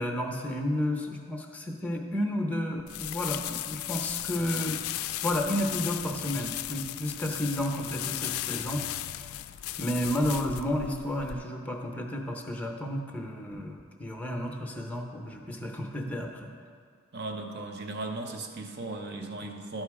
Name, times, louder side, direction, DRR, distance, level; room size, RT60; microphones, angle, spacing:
voice 1, 0.0-4.8 5.2-8.8 9.8-16.5, left 1 dB, 5° left, 1 dB, 0.8 m, -31 dB
sound 1, 2.9-11.3, left 14 dB, 85° left, 0.3 m, -36 dB
voice 2, 17.1-19.8, right 2 dB, 50° right, 3 dB, 0.8 m, -37 dB
12.0 x 4.4 x 4.8 m, 2.2 s
head